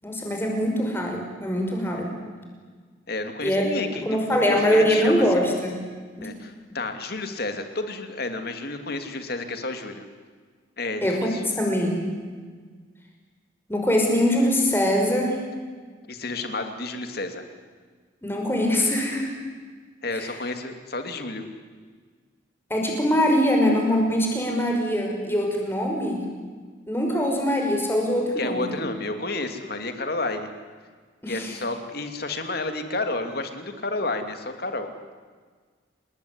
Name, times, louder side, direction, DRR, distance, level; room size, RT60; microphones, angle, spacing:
voice 1, 0.0-2.1 3.4-3.6 3.9-5.8 6.2-6.3 11.0-12.1 13.7-15.4 18.2-19.4 20.1-20.3 22.7-26.2 26.9-28.7 31.2-31.5, equal, 10° left, 1 dB, 5.8 m, -23 dB
voice 2, 3.1-5.2 6.2-10.1 10.8-11.4 16.1-17.4 20.0-21.4 28.4-30.5 31.3-34.9, left 2 dB, 50° left, 7 dB, 2.9 m, -31 dB
29.5 x 20.0 x 9.8 m, 1.5 s
head